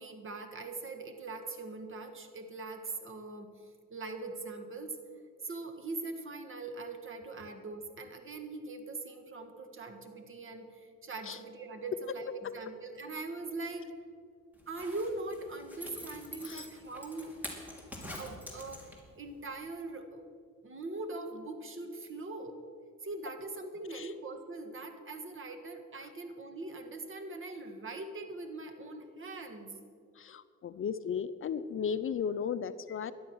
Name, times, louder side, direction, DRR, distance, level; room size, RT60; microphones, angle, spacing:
voice 1, 0.0-3.5 3.9-5.0 5.4-13.9 14.7-17.4 18.1-20.3 20.6-22.6 23.0-29.8, right 2 dB, 45° right, 8 dB, 1.7 m, -41 dB
Zipper (clothing), 14.6-19.2 19.5-19.6, left 1 dB, 5° right, 2.9 m, -45 dB
voice 2, 30.2-33.1, left 7 dB, 45° left, 12 dB, 0.6 m, -35 dB
13.0 x 11.5 x 6.3 m, 2.2 s
cardioid pair, 90°, 30 cm